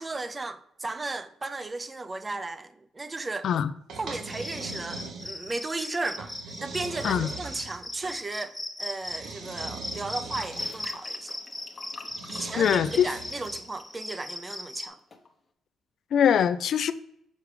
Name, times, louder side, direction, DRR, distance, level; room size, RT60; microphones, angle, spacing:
voice 1, 0.0-3.5 3.9-6.3 6.6-11.4 12.3-15.0, right 2 dB, 25° right, 0.5 m, -35 dB
sound 1, 3.9-5.6 6.2-8.2 9.0-10.9 12.1-13.7, right 4 dB, 75° right, 0.9 m, -41 dB
Cricket, 4.2-14.9, left 1 dB, 10° left, 0.8 m, -38 dB
sound 2, 10.4-14.8 15.1-15.3, left 4 dB, 40° left, 0.9 m, -48 dB
voice 2, 12.6-13.1 16.1-16.9, left 8 dB, 65° left, 0.4 m, -22 dB
6.6 x 4.6 x 3.3 m
cardioid pair, 90°, 0 cm